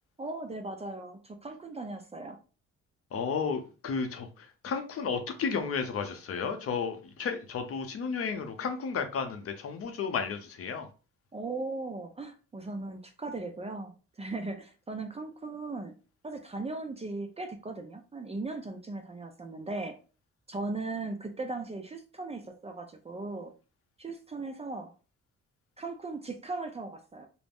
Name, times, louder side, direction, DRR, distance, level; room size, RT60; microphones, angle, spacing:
voice 1, 0.2-2.4 11.3-13.9 14.2-15.9 16.2-20.0 20.5-23.5 24.0-24.9 25.8-27.3, right 3 dB, 20° right, 0.4 m, -38 dB
voice 2, 3.1-10.9, left 5 dB, 50° left, 0.6 m, -33 dB
2.4 x 2.0 x 3.5 m
cardioid pair, 90°, 30 cm